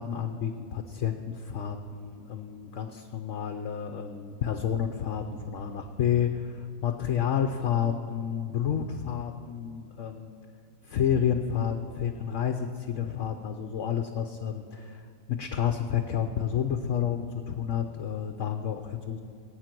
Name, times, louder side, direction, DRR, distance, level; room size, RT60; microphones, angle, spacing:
voice 1, 0.0-10.3 10.8-15.0 15.3-19.2, left 8 dB, 60° left, 6 dB, 1.1 m, -30 dB
22.0 x 8.9 x 6.0 m, 2.5 s
omnidirectional pair, 1.6 m